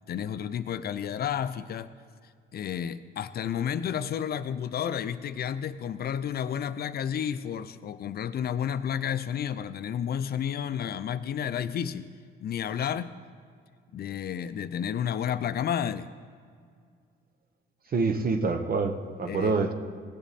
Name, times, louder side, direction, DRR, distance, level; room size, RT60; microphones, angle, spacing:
voice 1, 0.1-1.9 2.5-12.1 12.4-13.1 13.9-16.1 19.3-19.6, left 9 dB, 55° left, 13 dB, 0.4 m, -31 dB
voice 2, 17.9-19.7, right 4 dB, 50° right, 8 dB, 0.9 m, -26 dB
16.5 x 7.1 x 4.2 m, 2.1 s
cardioid pair, 90°, 20 cm